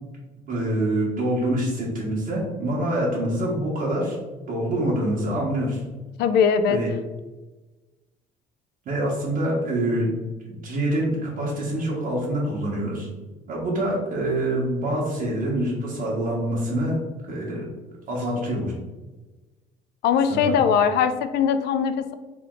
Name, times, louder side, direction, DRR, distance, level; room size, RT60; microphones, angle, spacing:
voice 1, 0.5-4.2 4.5-5.8 6.7-6.9 8.9-10.1 10.5-13.1 13.5-17.0 17.3-17.6 18.1-18.7 20.3-20.6, right 1 dB, 55° right, -5 dB, 1.1 m, -25 dB
voice 2, 6.2-6.8 20.0-22.1, left 7 dB, 80° left, 10 dB, 0.4 m, -20 dB
3.4 x 3.0 x 3.7 m, 1.2 s
cardioid pair, 110°, 17 cm